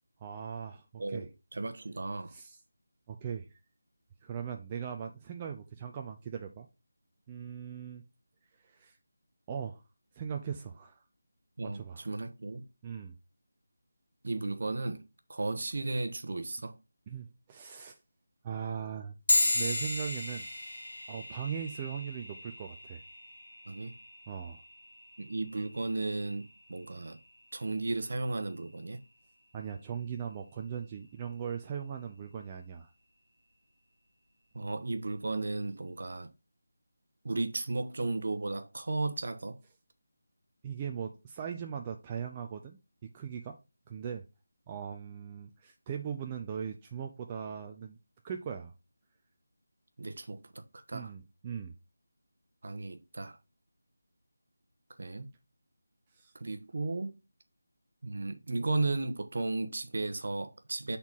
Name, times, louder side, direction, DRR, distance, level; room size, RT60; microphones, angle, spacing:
voice 1, 0.2-1.3 2.3-2.6 3.1-3.5 4.2-6.7 7.3-8.0 8.6-9.0 9.5-9.8 10.1-11.0 11.6-12.1 12.8-13.1 17.1-18.0 18.4-19.2 19.5-20.5 21.1-23.0 24.3-24.6 29.5-32.9 40.6-43.6 43.9-44.2 44.7-48.0 48.2-48.7 50.9-51.7 56.1-56.3, right 7 dB, 20° right, 0.5 m, -39 dB
voice 2, 1.0-2.3 11.6-12.6 14.2-15.0 15.3-16.7 23.7-23.9 25.2-27.2 27.5-29.0 34.5-36.3 37.2-39.6 50.0-51.1 52.6-53.4 55.0-55.3 56.3-57.2 58.0-61.0, right 2 dB, 55° right, 1.0 m, -35 dB
sound 1, 19.3-29.1, left 2 dB, 70° left, 1.9 m, -36 dB
7.0 x 4.1 x 3.6 m
figure-of-eight pair, 160°, 0 cm